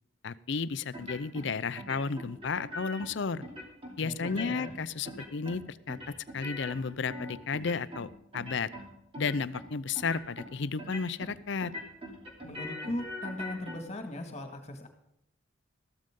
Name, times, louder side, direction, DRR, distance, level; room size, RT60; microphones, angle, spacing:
voice 1, 0.2-3.4 4.0-8.7 9.2-11.7, left 5 dB, 60° left, 16 dB, 0.6 m, -33 dB
sound 1, 0.9-1.5 1.8-3.1 3.4-3.9 4.2-4.8 5.0-5.6 5.9-8.1 8.3-8.9 9.1-9.6 9.9-10.5 10.8-11.3 11.6-13.7, left 1 dB, 30° right, 3.0 m, -41 dB
voice 2, 4.0-4.7 12.4-14.9, left 1 dB, 35° left, 5 dB, 2.0 m, -38 dB
14.5 x 13.0 x 3.8 m, 0.81 s
head